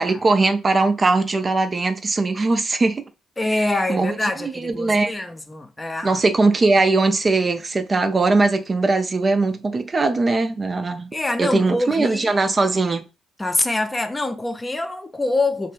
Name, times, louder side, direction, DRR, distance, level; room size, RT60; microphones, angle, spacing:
voice 1, 0.0-3.0 3.6-5.1 6.0-11.1 11.4-13.0, right 3 dB, 35° right, 0.4 m, -20 dB
voice 2, 3.4-6.2 11.1-12.4 13.4-15.7, left 2 dB, 20° left, 0.5 m, -25 dB
3.2 x 2.2 x 3.2 m
figure-of-eight pair, 45°, 0 cm